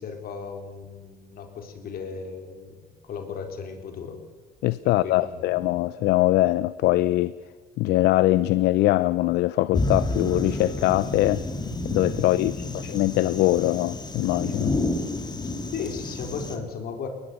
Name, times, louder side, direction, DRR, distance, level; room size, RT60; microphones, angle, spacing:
voice 1, 0.0-4.2 4.8-5.6 12.6-12.8 15.4-17.1, left 5 dB, 60° left, 4.1 m, -36 dB
voice 2, 4.6-7.3 7.8-11.4 11.8-12.6 12.8-14.7, left 16 dB, 80° left, 0.6 m, -22 dB
sound 1, 9.7-16.6, left 2 dB, 25° left, 2.4 m, -30 dB
21.5 x 19.5 x 7.0 m
cardioid pair, 110°, 17 cm